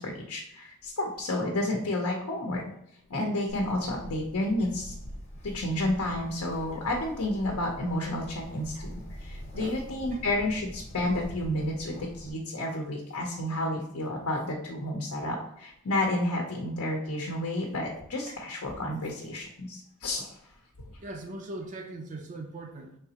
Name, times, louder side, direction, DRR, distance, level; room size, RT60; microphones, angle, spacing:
voice 1, 0.0-2.6 3.1-4.9 5.4-20.3, left 1 dB, 75° left, 0 dB, 0.7 m, -31 dB
Bird, 3.5-12.3, equal, 30° left, 0.8 m, -44 dB
voice 2, 9.5-9.8 10.1-10.2 18.3-18.4 21.0-23.0, right 2 dB, 35° right, 4 dB, 0.4 m, -40 dB
4.9 x 3.4 x 2.8 m, 0.73 s
head